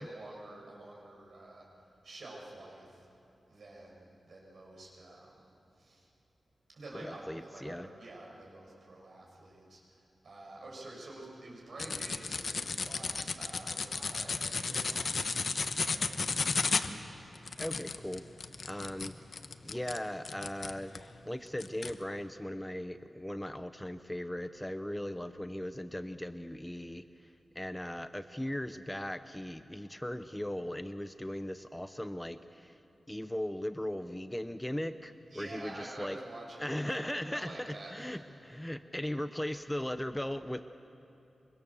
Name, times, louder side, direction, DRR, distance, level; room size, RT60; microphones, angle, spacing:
voice 1, 0.0-1.7 2.0-3.1 3.5-5.5 5.8-6.1 6.7-16.4 35.3-38.2 38.5-38.6, right 2 dB, 65° right, -3 dB, 6.6 m, -48 dB
voice 2, 6.9-7.9 17.6-18.3 18.7-19.1 19.6-27.3 27.5-32.7 33.1-36.2 36.6-40.7, left 1 dB, 10° left, 10 dB, 0.7 m, -38 dB
sound 1, 11.8-21.1 21.6-21.9, left 4 dB, 60° left, 1.0 m, -34 dB
24.5 x 24.0 x 7.1 m, 2.8 s
wide cardioid pair, 95°, 0 cm